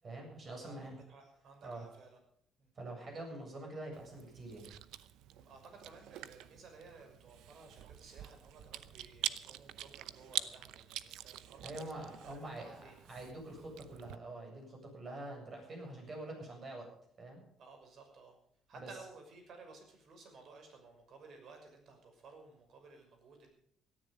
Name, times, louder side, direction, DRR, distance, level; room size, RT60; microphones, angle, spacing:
voice 1, 0.0-1.0 1.6-1.9 2.8-4.7 11.6-12.8 13.1-16.9 17.2-17.4 18.7-18.9, right 2 dB, 35° right, 2 dB, 7.5 m, -45 dB
voice 2, 0.6-2.2 2.6-2.7 5.3-12.9 17.6-18.4 18.7-23.5, right 3 dB, 55° right, 4 dB, 6.0 m, -56 dB
Chewing mastication, 3.9-14.2, right 13 dB, 80° right, 0.8 m, -45 dB
17.5 x 13.5 x 5.1 m, 0.65 s
cardioid pair, 130°, 0 cm